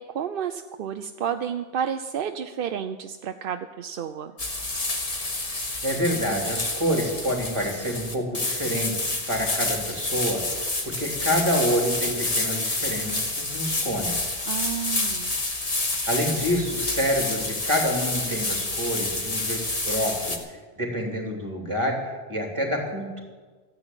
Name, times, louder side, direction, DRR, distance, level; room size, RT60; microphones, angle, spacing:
voice 1, 0.0-4.4 14.5-15.4, right 8 dB, 55° right, 8 dB, 0.7 m, -31 dB
sound 1, 4.4-20.4, left 2 dB, 30° left, 1.5 m, -28 dB
voice 2, 5.8-14.3 16.1-23.2, equal, 25° right, 1 dB, 2.9 m, -27 dB
14.0 x 9.8 x 9.0 m, 1.4 s
omnidirectional pair, 1.3 m